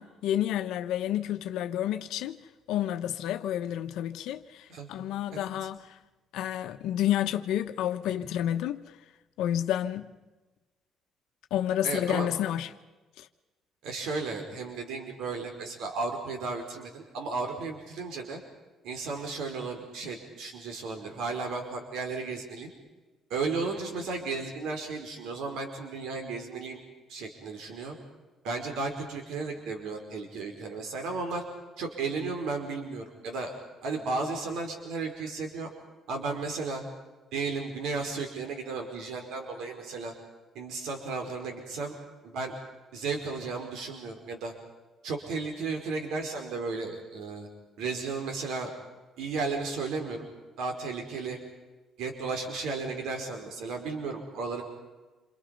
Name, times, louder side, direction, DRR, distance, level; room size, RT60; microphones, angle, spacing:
voice 1, 0.0-2.4 2.7-6.0 6.3-8.8 9.4-10.1 11.5-12.7 13.2-13.3, left 11 dB, 85° left, 1.1 m, -30 dB
voice 2, 11.8-12.3 13.8-18.4 18.8-22.7 23.3-26.8 27.1-28.0 28.4-31.4 31.8-33.5 33.8-35.7 36.1-36.8 37.3-40.1 40.6-42.0 42.2-42.5 42.9-44.5 45.0-47.5 47.8-48.7 49.2-50.3 50.6-51.4 52.0-54.6, right 4 dB, 80° right, 5.1 m, -34 dB
28.0 x 28.0 x 5.4 m
cardioid pair, 170°, 0 cm